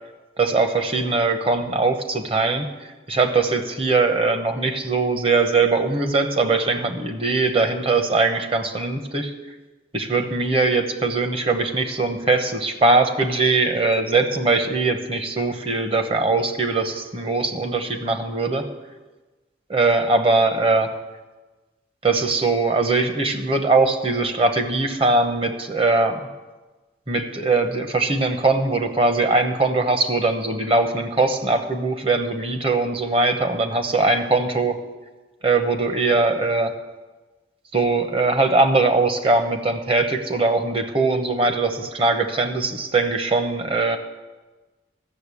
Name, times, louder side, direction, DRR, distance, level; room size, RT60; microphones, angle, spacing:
voice 1, 0.4-9.3 9.9-18.7 19.7-20.9 22.0-26.2 27.1-34.8 35.4-36.7 37.7-44.0, right 3 dB, 30° right, 7 dB, 1.0 m, -21 dB
14.0 x 6.9 x 8.4 m, 1.2 s
head